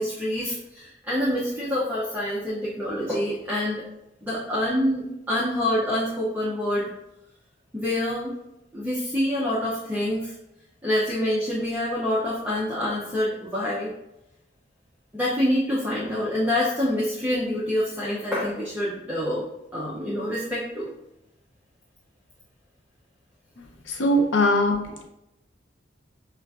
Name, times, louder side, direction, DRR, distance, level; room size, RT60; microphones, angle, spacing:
voice 1, 0.0-3.8 4.2-6.9 7.7-8.3 8.7-10.3 10.8-13.9 15.1-19.4 19.7-20.9, left 1 dB, 10° right, -8 dB, 0.6 m, -26 dB
voice 2, 23.9-25.1, left 1 dB, 85° left, 2 dB, 0.6 m, -21 dB
5.4 x 2.4 x 2.3 m, 0.88 s
head